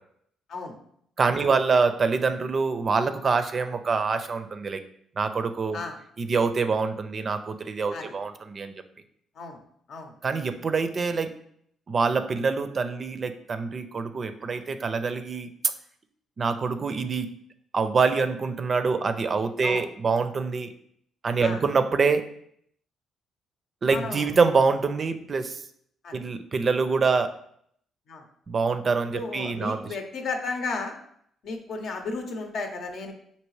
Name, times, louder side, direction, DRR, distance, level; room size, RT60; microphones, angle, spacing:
voice 1, 1.2-4.8 5.2-5.8 6.2-8.7 10.2-11.3 11.9-15.5 16.4-17.3 17.7-20.7 21.2-22.2 23.8-25.6 26.1-27.3 28.5-30.0, right 4 dB, 40° right, 9 dB, 0.4 m, -25 dB
voice 2, 23.9-24.3 26.0-26.1 28.1-28.2 29.1-30.9 31.4-33.1, left 3 dB, 65° left, 4 dB, 0.7 m, -33 dB
5.3 x 2.7 x 3.1 m, 0.68 s
cardioid pair, 90°, 0 cm